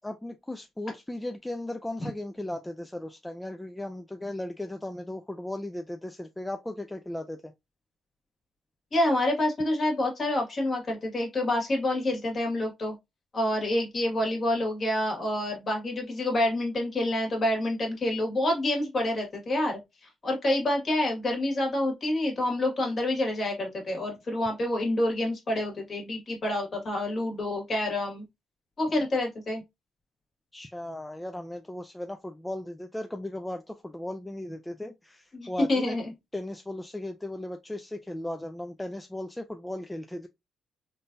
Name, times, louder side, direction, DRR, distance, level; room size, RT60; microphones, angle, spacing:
voice 1, 0.0-7.5 30.5-36.0 36.3-40.3, left 1 dB, 10° left, 0.3 m, -36 dB
voice 2, 8.9-12.9 13.3-28.2 28.8-29.6 35.3-36.1, left 1 dB, 40° left, 1.7 m, -28 dB
3.6 x 2.6 x 2.6 m
cardioid pair, 90°, 0 cm